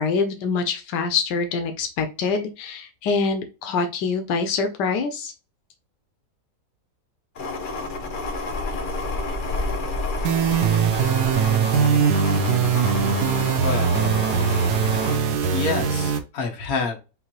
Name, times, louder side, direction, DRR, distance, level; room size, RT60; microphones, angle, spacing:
voice 1, 0.0-5.3, left 4 dB, 90° left, 6 dB, 1.3 m, -25 dB
sound 1, 7.4-15.2, left 3 dB, 45° left, 0.7 m, -29 dB
sound 2, 10.2-16.2, right 7 dB, 75° right, 1.2 m, -21 dB
voice 2, 13.6-14.2 15.5-17.0, left 4 dB, 60° left, 2 dB, 1.6 m, -27 dB
5.7 x 2.8 x 2.9 m, 0.30 s
omnidirectional pair, 1.8 m